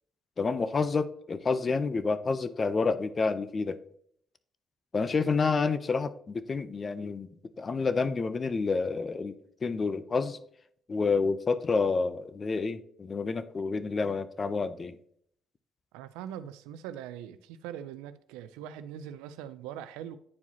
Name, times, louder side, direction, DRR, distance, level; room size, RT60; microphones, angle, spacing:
voice 1, 0.4-3.8 4.9-9.3 9.6-10.4 10.9-15.0, left 4 dB, 40° left, 0.6 m, -29 dB
voice 2, 15.9-20.2, right 10 dB, 90° right, 0.4 m, -42 dB
9.5 x 4.7 x 2.8 m
supercardioid pair, 60°, 0 cm